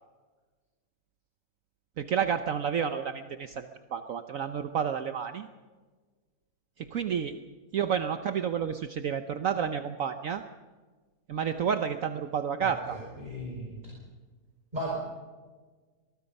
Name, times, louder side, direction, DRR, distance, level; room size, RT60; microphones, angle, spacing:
voice 1, 2.0-5.5 6.8-7.4 7.7-10.4 11.3-13.0, right 7 dB, 60° right, 8 dB, 1.2 m, -30 dB
voice 2, 12.6-13.9 14.7-14.9, equal, 25° right, -3 dB, 5.6 m, -37 dB
23.5 x 21.0 x 5.4 m, 1.4 s
omnidirectional pair, 1.7 m